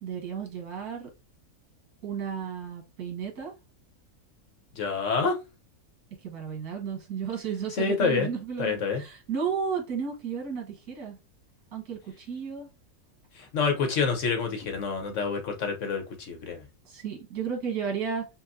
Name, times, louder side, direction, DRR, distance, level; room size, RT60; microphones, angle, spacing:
voice 1, 0.0-1.1 2.0-3.5 6.2-11.2 11.7-12.7 16.9-18.3, right 6 dB, 75° right, 1.7 m, -33 dB
voice 2, 4.8-5.4 7.8-8.3 8.6-9.0 13.3-16.6, left 5 dB, 60° left, 1.2 m, -27 dB
5.6 x 2.6 x 2.6 m
omnidirectional pair, 1.6 m